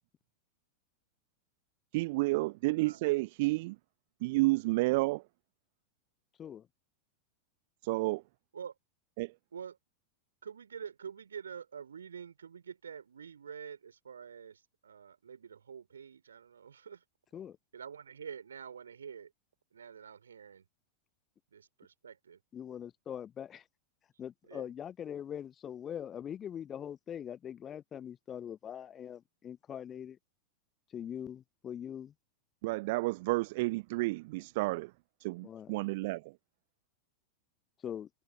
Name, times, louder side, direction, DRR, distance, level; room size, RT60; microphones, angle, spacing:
voice 1, 1.9-3.8 4.2-5.2 7.8-8.2 9.2-9.3 32.6-34.9 35.2-36.3, right 22 dB, 50° right, 0.5 m, -30 dB
voice 2, 10.4-17.0 17.7-19.3 19.7-20.6 21.5-22.4 24.5-24.7, right 7 dB, 70° right, 4.4 m, -47 dB
voice 3, 22.5-23.6 24.2-30.2 30.9-32.1 35.4-35.7 37.8-38.1, left 9 dB, 25° left, 0.5 m, -42 dB
figure-of-eight pair, 90°, 0 cm